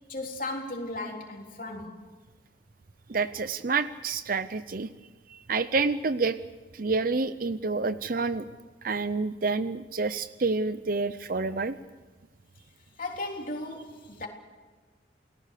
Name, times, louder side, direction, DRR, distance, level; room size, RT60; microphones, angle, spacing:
voice 1, 0.1-2.0 13.0-14.3, left 2 dB, 45° left, 3.5 m, -36 dB
voice 2, 3.1-4.9 5.3-6.4 6.7-8.5 8.8-11.8, right 4 dB, 50° right, 0.6 m, -28 dB
29.0 x 19.0 x 6.7 m
head